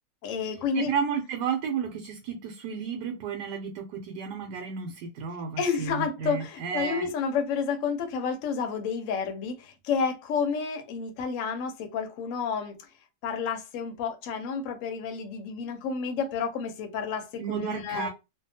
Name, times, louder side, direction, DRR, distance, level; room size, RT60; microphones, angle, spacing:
voice 1, 0.2-0.9 5.6-12.8 13.2-18.1, left 6 dB, 65° left, 0.9 m, -30 dB
voice 2, 0.7-7.1 17.4-18.1, right 7 dB, 90° right, 1.2 m, -32 dB
2.7 x 2.3 x 2.6 m
omnidirectional pair, 1.7 m